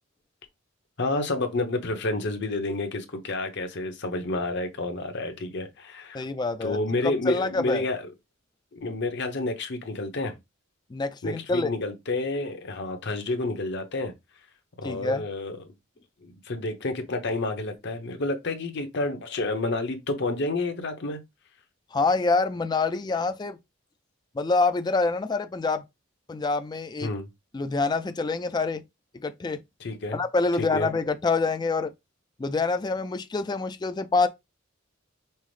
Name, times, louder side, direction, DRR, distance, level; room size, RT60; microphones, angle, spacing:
voice 1, 1.0-6.2 6.6-8.1 8.7-10.3 11.2-14.1 14.8-15.6 16.2-21.2 27.0-27.3 29.8-30.2 30.6-30.9, left 2 dB, 55° left, 0.8 m, -29 dB
voice 2, 6.1-6.8 7.3-7.8 10.9-11.7 14.8-15.2 21.9-23.6 24.3-25.8 26.3-27.1 27.5-28.8 29.2-29.6 30.1-31.9 32.4-34.3, left 3 dB, 20° left, 0.3 m, -26 dB
5.5 x 2.0 x 3.1 m
head